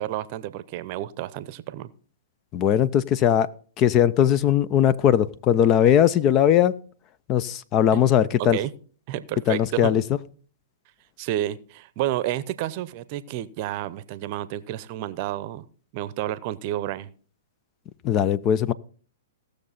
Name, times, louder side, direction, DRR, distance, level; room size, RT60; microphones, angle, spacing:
voice 1, 0.0-1.9 8.5-8.7 9.1-9.9 11.2-15.6 15.9-17.1, right 13 dB, 45° right, 16 dB, 0.7 m, -30 dB
voice 2, 2.5-3.5 3.8-6.7 7.3-8.6 9.5-10.0 18.0-18.7, left 10 dB, 35° left, 17 dB, 0.5 m, -19 dB
17.0 x 6.6 x 4.1 m, 0.43 s
hypercardioid pair, 115°, 0 cm